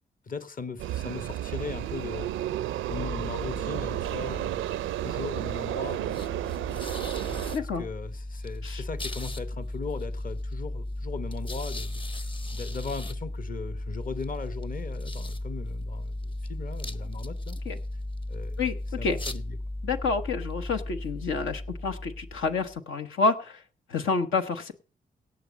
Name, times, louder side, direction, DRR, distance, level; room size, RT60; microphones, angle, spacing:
voice 1, 0.3-2.3 2.9-4.7 5.0-6.2 7.2-12.0 12.5-17.6 18.3-18.6 19.0-19.6, left 4 dB, 45° left, 12 dB, 1.2 m, -38 dB
sound 1, 0.8-7.6, right 13 dB, 85° right, 0.5 m, -32 dB
sound 2, 2.9-22.8, left 1 dB, 25° left, 0.9 m, -36 dB
voice 2, 7.5-7.8 8.6-8.8 17.6-17.8 18.6-18.8 19.0-19.2 19.8-23.6 23.9-24.7, left 4 dB, 80° left, 6 dB, 1.1 m, -28 dB
17.5 x 6.3 x 5.3 m, 0.39 s
supercardioid pair, 45°, 20 cm